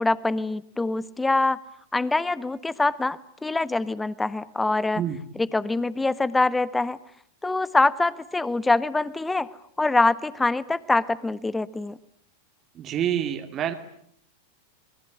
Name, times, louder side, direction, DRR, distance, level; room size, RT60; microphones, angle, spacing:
voice 1, 0.0-1.6 1.9-5.0 5.4-7.0 7.4-9.5 9.8-12.0, left 2 dB, 10° left, 18 dB, 1.2 m, -24 dB
voice 2, 12.7-13.7, right 10 dB, 30° right, 8 dB, 2.3 m, -27 dB
26.5 x 22.5 x 9.7 m, 0.66 s
figure-of-eight pair, 90°, 0 cm